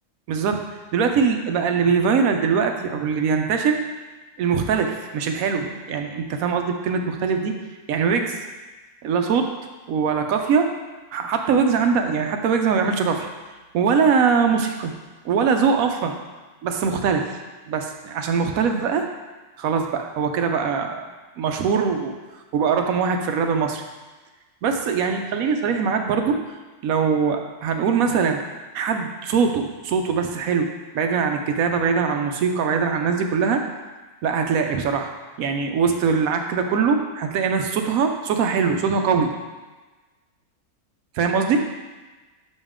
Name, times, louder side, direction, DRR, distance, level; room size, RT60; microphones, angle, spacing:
voice 1, 0.3-3.8 4.4-7.6 7.9-8.4 9.0-9.5 9.9-10.7 11.1-13.3 13.7-14.9 15.2-16.2 16.6-17.3 17.7-19.0 19.6-21.0 21.4-22.1 22.5-23.8 24.6-26.4 26.8-28.4 28.7-30.7 30.9-33.6 34.2-35.1 35.4-39.3 41.1-41.6, right 5 dB, 90° right, 5 dB, 1.1 m, -22 dB
6.4 x 5.2 x 3.6 m, 1.2 s
omnidirectional pair, 1.4 m